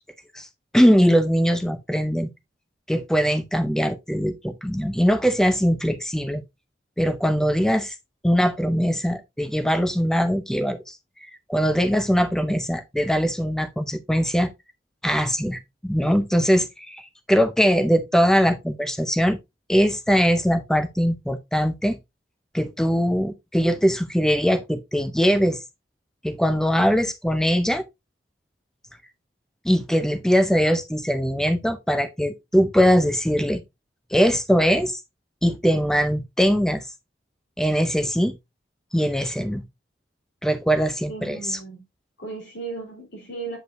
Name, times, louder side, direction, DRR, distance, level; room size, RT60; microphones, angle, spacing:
voice 1, 0.7-2.3 2.9-6.4 7.0-7.9 8.2-11.0 11.5-14.5 15.0-19.4 19.7-22.0 22.5-25.6 26.2-27.8 29.6-33.6 34.1-35.0 35.4-36.9 37.6-38.4 38.9-39.6 40.4-41.6, equal, 5° left, 0.5 m, -21 dB
voice 2, 41.1-41.8 42.2-43.6, right 4 dB, 80° left, 3.1 m, -36 dB
8.0 x 5.0 x 2.5 m
head